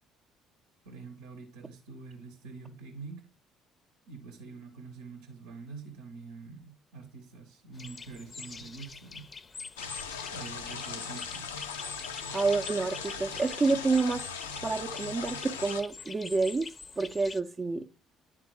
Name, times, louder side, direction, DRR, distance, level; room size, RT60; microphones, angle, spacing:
voice 1, 0.8-3.3 4.1-9.3 10.3-11.5, right 4 dB, 85° right, 0.9 m, -46 dB
sound 1, 7.7-17.4, left 4 dB, 35° left, 0.5 m, -45 dB
sound 2, 9.8-15.8, left 6 dB, 85° left, 0.4 m, -39 dB
voice 2, 12.3-14.3 14.6-16.7 17.0-17.9, right 3 dB, 30° right, 0.5 m, -28 dB
10.5 x 3.7 x 3.1 m
hypercardioid pair, 50°, 0 cm